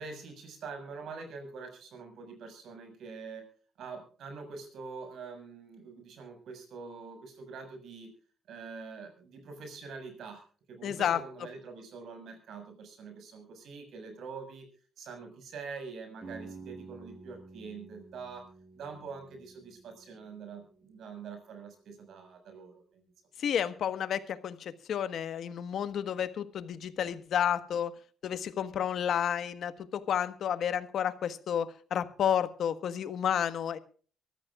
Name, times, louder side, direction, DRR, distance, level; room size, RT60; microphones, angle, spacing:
voice 1, 0.0-3.5 3.8-8.1 8.5-14.7 15.0-18.4 18.7-23.0, right 4 dB, 70° right, 6 dB, 6.5 m, -45 dB
voice 2, 10.8-11.2 23.4-27.9 28.2-33.8, left 9 dB, 65° left, 12 dB, 1.4 m, -31 dB
sound 1, 16.2-22.0, right 3 dB, 30° right, 5.6 m, -51 dB
24.0 x 14.0 x 2.5 m, 0.41 s
cardioid pair, 110°, 0 cm